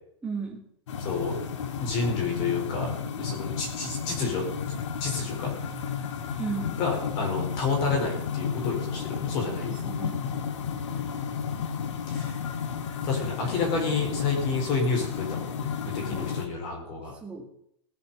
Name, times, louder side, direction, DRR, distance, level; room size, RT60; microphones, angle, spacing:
voice 1, 0.2-0.7 6.4-6.8 9.5-10.2 16.1-16.3 17.2-17.4, right 5 dB, 5° right, -1 dB, 2.1 m, -35 dB
sound 1, 0.9-16.5, left 6 dB, 75° left, 1.6 m, -33 dB
voice 2, 1.0-1.3 1.8-4.5 5.0-5.5 6.8-9.7 10.9-11.5 12.1-12.3 13.0-15.7 15.9-17.1, left 4 dB, 30° left, 0 dB, 4.5 m, -29 dB
18.0 x 6.7 x 7.1 m, 0.72 s
supercardioid pair, 180°, 15 cm